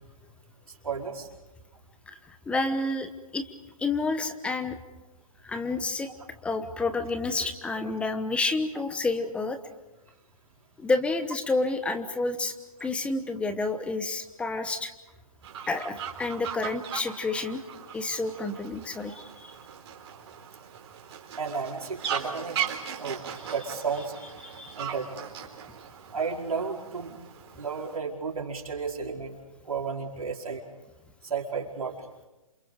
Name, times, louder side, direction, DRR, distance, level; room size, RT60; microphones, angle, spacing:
voice 1, 0.8-1.3 21.4-22.6 23.0-24.1 24.8-25.2 26.1-27.2 27.6-29.4 29.7-30.6 31.2-31.9, right 5 dB, 80° right, -1 dB, 5.0 m, -33 dB
voice 2, 2.5-3.5 3.8-4.8 5.4-6.1 6.4-9.6 10.8-12.5 12.8-14.9 15.7-17.6 17.9-19.5 24.4-24.8, left 3 dB, 5° left, 9 dB, 1.1 m, -29 dB
Fowl, 15.4-28.0, right 8 dB, 50° right, 4.2 m, -38 dB
29.0 x 28.0 x 5.1 m, 1.0 s
hypercardioid pair, 145°, 18 cm